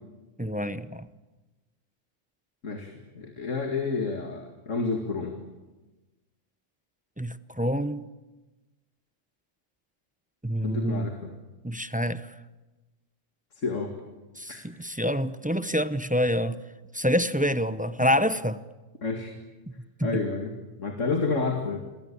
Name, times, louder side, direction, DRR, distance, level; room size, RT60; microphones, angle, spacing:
voice 1, 0.4-1.1 7.2-8.1 10.4-11.1 11.6-12.3 14.4-16.6 16.9-18.6 20.0-20.2, equal, 10° right, 0.6 m, -27 dB
voice 2, 2.6-5.4 10.6-11.3 13.5-13.9 14.5-14.6 19.0-19.3 20.0-20.5 20.8-21.8, left 4 dB, 75° left, 2.6 m, -30 dB
28.5 x 22.5 x 8.6 m
omnidirectional pair, 1.3 m